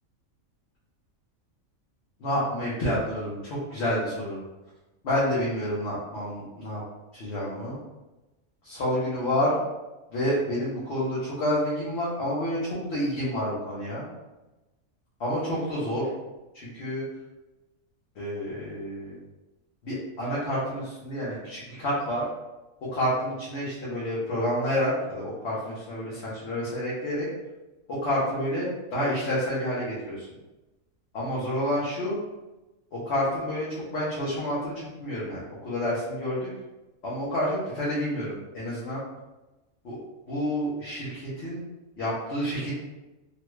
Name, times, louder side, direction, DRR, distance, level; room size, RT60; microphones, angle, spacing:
voice 1, 2.2-4.4 5.0-6.8 7.1-7.8 8.6-9.6 10.1-14.0 15.2-16.1 16.5-17.1 18.2-19.2 19.8-22.3 22.8-27.3 27.9-30.3 31.1-32.2 32.9-36.5 37.0-39.0 39.8-40.0 40.3-41.6 42.0-42.7, equal, 55° left, -9 dB, 1.0 m, -29 dB
3.1 x 2.3 x 3.1 m, 1.1 s
omnidirectional pair, 1.5 m